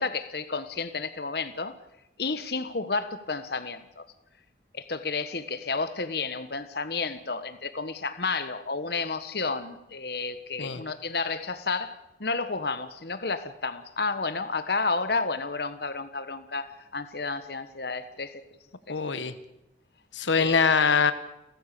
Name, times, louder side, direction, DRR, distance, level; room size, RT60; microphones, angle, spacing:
voice 1, 0.0-1.7 2.2-4.1 4.7-18.4 18.9-19.0 20.4-20.6, left 4 dB, 60° left, 11 dB, 1.3 m, -31 dB
voice 2, 18.9-19.3 20.1-21.1, left 5 dB, 90° left, 12 dB, 1.3 m, -23 dB
30.0 x 14.5 x 6.9 m, 0.91 s
head